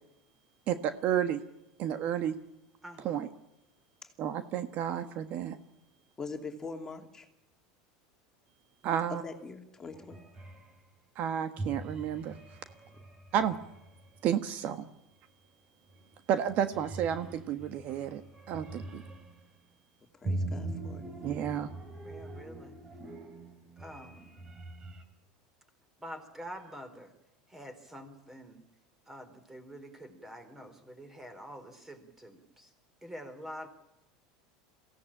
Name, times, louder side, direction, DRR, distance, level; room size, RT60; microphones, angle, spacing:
voice 1, 0.7-1.4 1.8-2.4 3.0-3.3 4.2-5.6 8.8-9.2 11.1-12.6 13.3-13.6 14.2-14.9 16.3-18.2 18.5-19.0 21.2-21.7, right 9 dB, 50° right, 1.4 m, -31 dB
voice 2, 2.8-3.2 5.0-5.5 22.0-22.8 23.8-24.4 26.0-27.1 27.5-28.6 29.1-32.7 33.0-33.7, equal, 10° right, 4.2 m, -47 dB
voice 3, 6.2-7.3 9.2-10.2 20.1-21.1, left 4 dB, 15° left, 2.8 m, -43 dB
sound 1, 9.9-10.8 11.6-14.2 15.9-16.2 16.5-19.5 20.2-25.0, right 2 dB, 25° right, 4.2 m, -42 dB
23.0 x 16.5 x 8.9 m
supercardioid pair, 125°, 3 cm